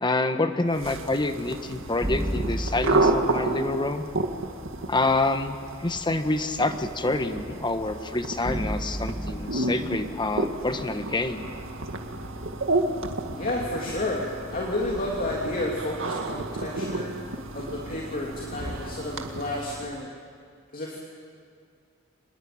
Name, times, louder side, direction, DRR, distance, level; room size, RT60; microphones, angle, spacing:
voice 1, 0.0-4.0 4.9-5.5 5.8-11.4, left 2 dB, 20° left, 8 dB, 1.3 m, -27 dB
sound 1, 0.7-20.0, right 2 dB, 65° right, 2.0 m, -31 dB
sound 2, 2.0-4.2 8.4-11.7, equal, 10° right, 2.2 m, -33 dB
voice 2, 13.3-14.2 14.5-17.1 17.5-20.1 20.7-21.0, left 2 dB, 45° left, -2 dB, 3.0 m, -31 dB
26.5 x 21.0 x 8.8 m, 2.2 s
head